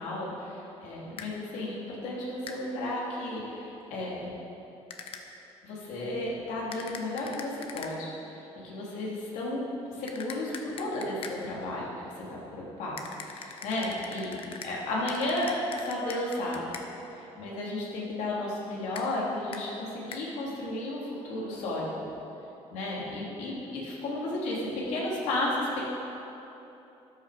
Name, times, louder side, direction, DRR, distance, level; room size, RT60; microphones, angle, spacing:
voice 1, 0.0-4.3 5.6-16.7 17.2-22.1 22.7-25.8, left 1 dB, 85° left, -5 dB, 3.0 m, -33 dB
sound 1, 1.2-1.3 2.5-2.6 4.9-5.2 6.7-7.9 10.1-11.4 13.0-14.7 15.1-16.9 18.9-19.1 19.5-19.6 20.1-20.2, left 6 dB, 50° left, 1.0 m, -42 dB
13.5 x 10.0 x 5.1 m, 3.0 s
cardioid pair, 140°, 12 cm